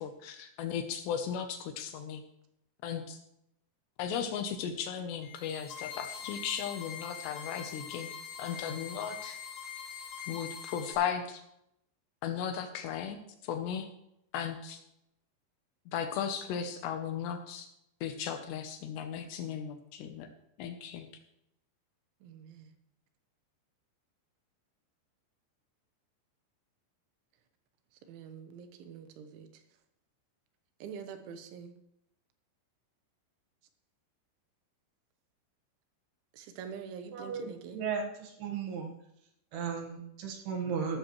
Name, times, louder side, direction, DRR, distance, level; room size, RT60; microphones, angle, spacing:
voice 1, 0.0-2.2 2.8-3.2 4.0-8.1 8.4-9.4 10.3-11.4 12.2-13.9 14.3-14.8 15.9-17.7 18.0-20.3 20.6-21.1, left 8 dB, 75° left, 7 dB, 2.8 m, -36 dB
sound 1, 5.2-10.9, left 7 dB, 40° left, 3.0 m, -43 dB
voice 2, 22.2-22.7 28.1-29.5 30.8-31.7 36.3-37.8, right 7 dB, 80° right, 8 dB, 3.4 m, -45 dB
voice 3, 37.1-38.9 39.5-41.0, right 6 dB, 65° right, 3 dB, 3.2 m, -35 dB
14.0 x 13.0 x 3.1 m, 0.79 s
omnidirectional pair, 5.4 m